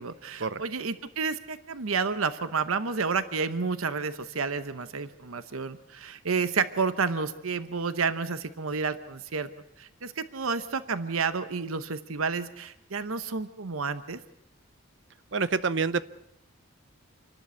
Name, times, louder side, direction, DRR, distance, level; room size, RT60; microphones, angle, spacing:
voice 1, 0.0-9.5 9.8-14.2, right 5 dB, 85° right, 12 dB, 0.9 m, -30 dB
voice 2, 15.3-16.0, right 4 dB, 60° right, 15 dB, 0.7 m, -27 dB
27.5 x 12.0 x 8.3 m, 0.84 s
head